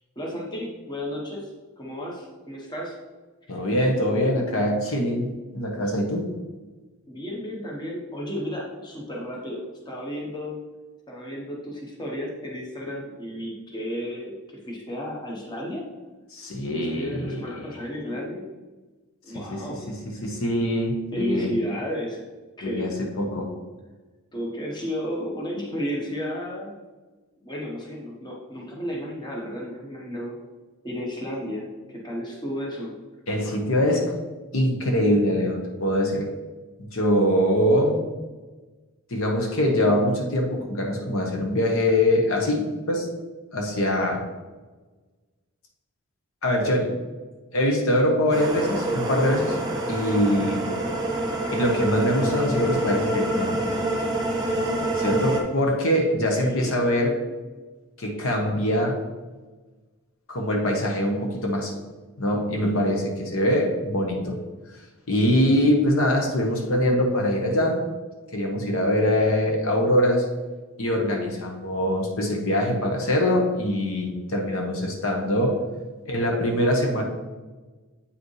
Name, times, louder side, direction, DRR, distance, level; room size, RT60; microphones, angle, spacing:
voice 1, 0.2-1.5 1.8-3.0 7.1-10.6 11.1-15.8 16.8-18.5 19.2-19.9 21.1-22.2 22.6-22.9 24.3-26.7 27.4-30.4 30.8-32.9 56.3-56.8, equal, 20° left, -2 dB, 1.0 m, -33 dB
voice 2, 3.5-6.3 16.3-17.8 19.3-21.5 22.6-23.5 33.3-34.1 34.5-36.3 36.8-38.0 39.1-43.1 43.5-44.2 46.4-46.9 47.5-49.5 49.9-50.7 51.5-53.6 55.0-57.2 58.0-59.0 60.3-61.7 62.2-64.4 65.1-67.8 68.3-70.3 70.8-75.6 76.1-77.0, left 1 dB, 65° left, 1 dB, 1.0 m, -23 dB
sound 1, 48.3-55.4, right 1 dB, 15° right, 1.2 m, -27 dB
8.4 x 5.0 x 3.2 m, 1.3 s
head